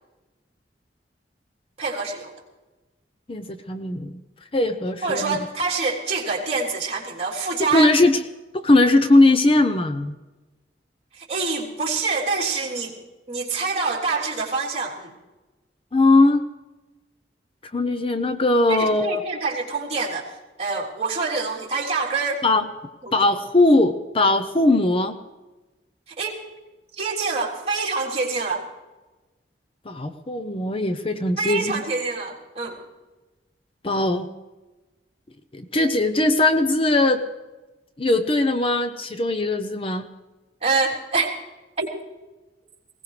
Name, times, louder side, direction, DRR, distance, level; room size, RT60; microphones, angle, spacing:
voice 1, 1.8-2.3 5.0-7.9 11.2-12.9 13.3-15.1 18.7-20.3 20.6-22.4 23.0-23.1 26.2-26.4 27.0-28.6 31.4-32.8 40.6-41.3 41.8-41.9, right 4 dB, 35° right, -2 dB, 3.4 m, -26 dB
voice 2, 3.3-4.1 4.5-5.5 7.7-8.2 8.5-10.1 15.9-16.5 17.7-19.2 22.4-22.7 23.1-25.2 29.9-31.8 33.8-34.3 35.5-37.2 38.0-40.0, left 2 dB, 30° left, 9 dB, 0.7 m, -19 dB
20.5 x 17.5 x 3.3 m, 1.1 s
head